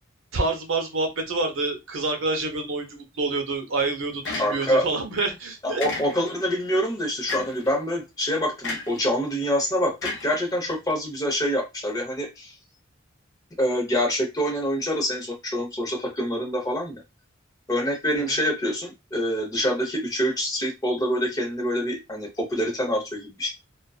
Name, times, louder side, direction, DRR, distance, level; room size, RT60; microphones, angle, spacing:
voice 1, 0.3-5.8 18.2-18.4, right 3 dB, 80° right, 5 dB, 0.7 m, -27 dB
sound 1, 4.2-4.9 5.8-6.5 7.3-7.7 8.6-9.0 10.0-10.9, left 3 dB, 65° left, 0.6 m, -33 dB
voice 2, 4.4-4.9 5.6-12.5 13.6-17.0 17.7-23.5, equal, 20° left, 1 dB, 0.8 m, -26 dB
2.4 x 2.3 x 2.3 m, 0.23 s
head